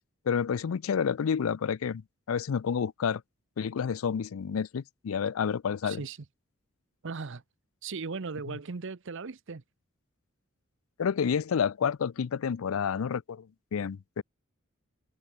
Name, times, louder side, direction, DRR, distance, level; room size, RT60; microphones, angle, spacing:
voice 1, 0.3-2.0 2.3-3.2 3.6-6.0 8.5-8.6 11.0-13.5 13.7-14.2, left 7 dB, 80° left, 0.4 m, -29 dB
voice 2, 5.8-6.2 7.0-7.4 7.8-9.6, right 4 dB, 65° right, 0.8 m, -37 dB
head